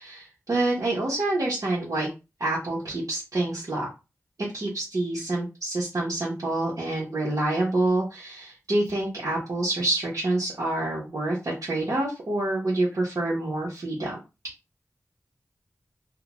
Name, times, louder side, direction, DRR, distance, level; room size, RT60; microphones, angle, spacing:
voice 1, 0.0-2.1 2.4-3.9 4.5-14.1, right 2 dB, 65° right, -7 dB, 0.9 m, -27 dB
2.4 x 2.1 x 3.0 m, 0.27 s
wide cardioid pair, 85°, 6 cm